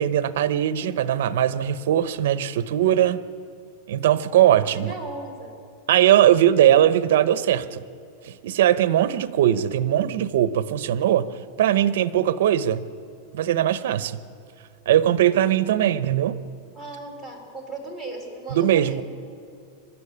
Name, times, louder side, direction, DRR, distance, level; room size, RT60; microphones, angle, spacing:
voice 1, 0.0-3.2 3.9-4.9 5.9-7.8 8.2-11.3 11.6-12.9 13.3-14.2 14.9-16.4 18.5-19.0, right 11 dB, 65° right, 14 dB, 0.9 m, -20 dB
voice 2, 4.0-5.6 16.7-19.0, right 2 dB, 5° left, 0 dB, 3.7 m, -37 dB
23.5 x 13.0 x 9.9 m, 2.4 s
supercardioid pair, 170°, 0 cm